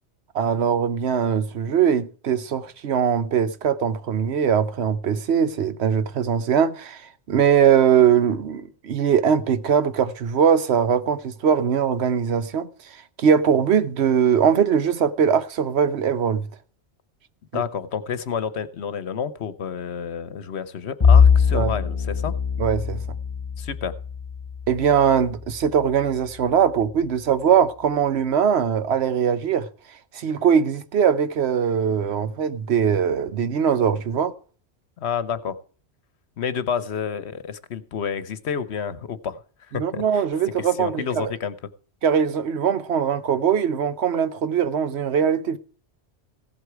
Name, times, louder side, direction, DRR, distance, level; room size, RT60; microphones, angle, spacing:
voice 1, 0.3-16.5 17.5-17.6 21.5-21.7 22.6-23.0 24.7-29.7 30.1-34.3 39.7-41.3 42.0-45.6, right 7 dB, 70° right, 1.0 m, -21 dB
voice 2, 17.5-22.3 23.6-24.0 35.0-35.6 36.4-39.4 39.7-40.2 40.6-41.5, left 7 dB, 75° left, 1.1 m, -29 dB
Bowed string instrument, 21.0-25.6, left 6 dB, 25° left, 1.3 m, -21 dB
16.0 x 8.1 x 4.6 m
omnidirectional pair, 1.1 m